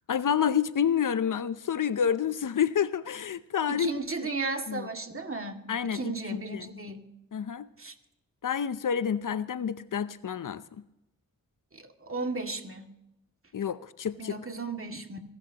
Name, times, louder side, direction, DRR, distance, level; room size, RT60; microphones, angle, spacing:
voice 1, 0.1-3.9 4.7-4.9 5.7-6.7 7.3-7.7 8.4-10.6 13.5-14.4, left 8 dB, 65° left, 0.7 m, -29 dB
voice 2, 3.7-5.6 5.8-7.0 7.8-7.9 11.7-12.9 14.2-15.2, right 3 dB, 40° right, 2.3 m, -35 dB
27.0 x 12.5 x 2.9 m
cardioid pair, 40°, 35 cm